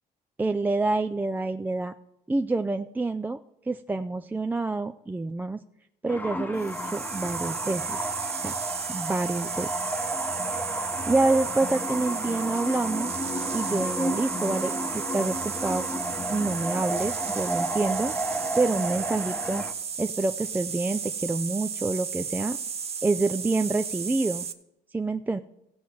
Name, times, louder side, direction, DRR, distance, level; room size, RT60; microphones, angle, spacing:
voice 1, 0.4-1.9 2.3-3.4 3.6-5.6 6.0-8.1 8.4-8.5 8.9-9.7 11.1-13.2 13.5-15.9 16.3-18.1 18.6-19.6 20.0-22.6 23.0-24.5 24.9-25.4, right 3 dB, 10° right, 8 dB, 0.3 m, -27 dB
sound 1, 6.1-19.7, equal, 10° left, 0.9 m, -32 dB
sound 2, 6.6-24.5, right 6 dB, 35° right, 0.8 m, -34 dB
16.5 x 5.6 x 4.7 m, 0.85 s
cardioid pair, 110°, 17 cm